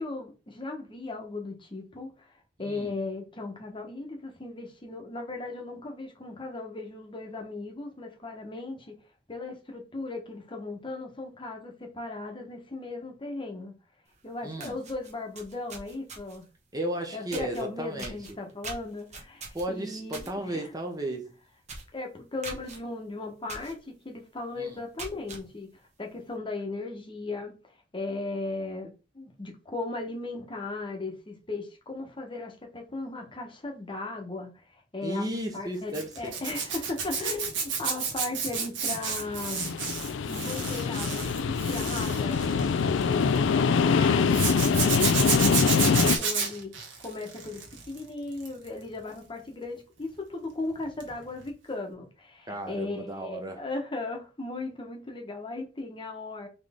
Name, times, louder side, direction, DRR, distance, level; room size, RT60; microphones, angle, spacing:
voice 1, 0.0-2.3 2.6-8.9 9.3-13.7 14.2-16.4 17.1-20.7 21.9-25.7 26.0-27.5 27.9-35.3 35.5-39.8 40.3-46.7 47.0-47.6 47.9-56.5, left 3 dB, 30° left, 0.9 m, -37 dB
voice 2, 2.6-3.0 14.4-14.7 16.7-18.2 19.5-21.3 24.6-24.7 35.0-36.3 52.5-53.6, right 1 dB, 20° right, 0.7 m, -34 dB
sound 1, 14.1-14.2 14.5-16.5 17.3-17.6 18.0-20.3 20.7-20.9 21.2-21.3 21.6-21.9 22.4-22.8 23.5-23.7 24.2-24.3 24.8-25.4, right 3 dB, 40° right, 1.1 m, -41 dB
Zipper (clothing), 35.9-43.4 44.3-48.0 48.3-48.7 51.0-51.2 51.4-51.5, right 6 dB, 80° right, 1.3 m, -31 dB
sound 2, 39.1-46.2, left 5 dB, 80° left, 0.4 m, -24 dB
4.1 x 3.2 x 3.5 m
head